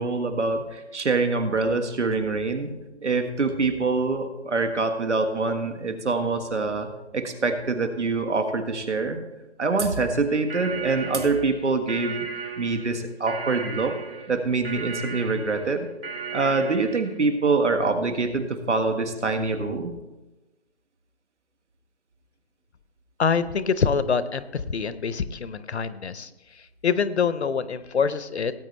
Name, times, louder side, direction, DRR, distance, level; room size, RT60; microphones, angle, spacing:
voice 1, 0.0-2.7 3.0-6.9 7.1-9.2 9.6-12.3 12.6-14.0 14.3-15.9 16.3-19.9, right 3 dB, 80° right, 6 dB, 1.8 m, -25 dB
sound 1, 10.3-17.2, right 5 dB, 60° right, 3.1 m, -36 dB
voice 2, 23.2-28.5, left 6 dB, 70° left, 14 dB, 0.8 m, -25 dB
18.0 x 8.5 x 3.3 m, 1.1 s
hypercardioid pair, 165°, 35 cm